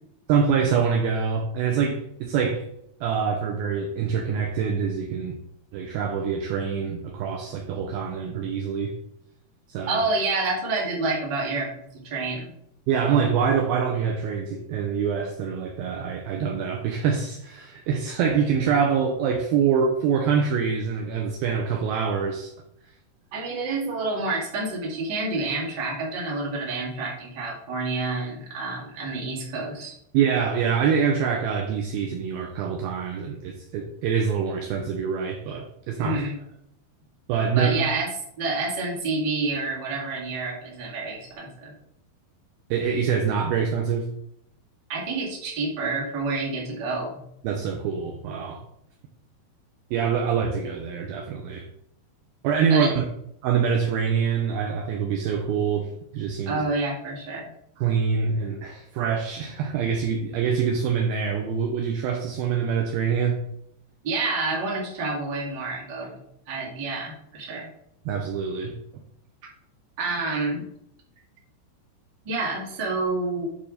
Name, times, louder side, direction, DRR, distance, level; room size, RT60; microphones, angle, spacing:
voice 1, 0.3-2.7 3.0-5.4 5.7-9.0 9.7-10.0 12.9-22.5 30.1-36.2 37.3-37.9 42.7-44.1 47.4-48.6 49.9-51.7 52.4-53.0 53.4-56.6 57.8-63.4 68.1-68.8, right 6 dB, 80° right, 2.2 m, -25 dB
voice 2, 9.9-12.5 23.3-29.9 36.0-36.4 37.5-38.1 38.4-41.7 44.9-47.2 52.7-52.9 56.4-57.5 64.0-66.2 66.5-67.7 70.0-70.6 72.2-73.5, right 3 dB, 40° right, 1.6 m, -28 dB
9.3 x 3.5 x 5.0 m
omnidirectional pair, 5.0 m